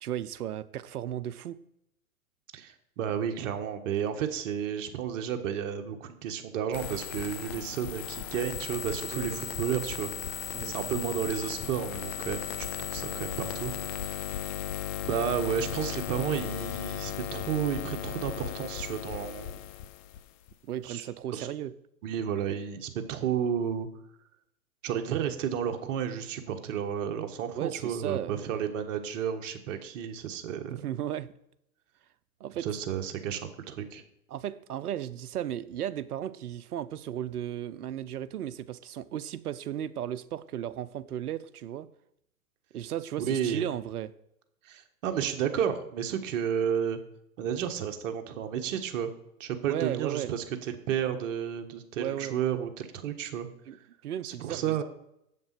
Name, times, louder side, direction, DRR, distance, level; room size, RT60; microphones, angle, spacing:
voice 1, 0.0-1.6 9.1-9.6 10.5-11.3 20.7-21.7 27.5-28.5 30.7-31.3 32.4-32.7 34.3-41.9 42.7-44.1 49.7-50.3 52.0-52.4 53.7-53.8 54.0-54.8, right 11 dB, 80° right, 0.8 m, -35 dB
voice 2, 2.5-13.7 14.4-14.5 15.0-19.6 20.8-21.0 21.3-21.5 22.0-23.9 24.8-30.9 32.6-33.4 33.7-34.0 43.3-43.7 44.6-47.0 47.4-49.1 49.4-53.5 54.2-54.8, right 8 dB, 55° right, 1.5 m, -32 dB
sound 1, 6.7-20.5, left 10 dB, 25° left, 0.4 m, -36 dB
7.7 x 7.5 x 6.0 m
hypercardioid pair, 120°, 45 cm